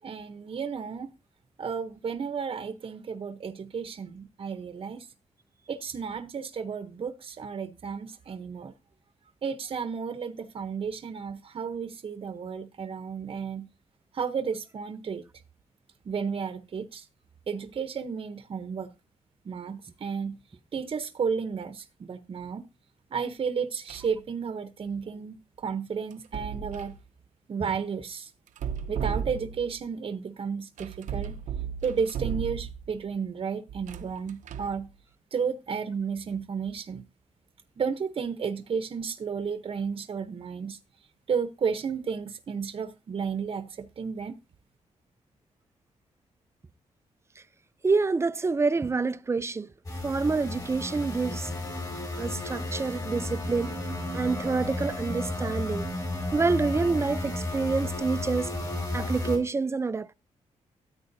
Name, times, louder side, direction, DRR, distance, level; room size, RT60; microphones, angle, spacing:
voice 1, 0.0-1.1 1.6-5.1 5.7-8.7 9.4-13.7 14.1-15.2 16.0-17.0 17.5-18.9 19.4-20.4 20.7-22.6 23.1-27.0 27.5-28.3 28.9-31.3 31.8-34.9 35.3-37.0 37.8-40.8 41.3-44.4, right 6 dB, 45° right, 0.8 m, -32 dB
sound 1, 23.9-24.2 26.1-27.0 28.5-29.8 30.8-33.0 33.7-34.8, right 7 dB, 85° right, 0.7 m, -35 dB
voice 2, 47.8-49.7 50.0-51.5 52.2-53.7 54.1-55.8 56.3-58.5 58.9-60.1, right 4 dB, 20° right, 0.4 m, -27 dB
sound 2, 49.8-59.4, left 1 dB, 30° left, 5.0 m, -33 dB
13.5 x 8.8 x 2.7 m
cardioid pair, 115°, 12 cm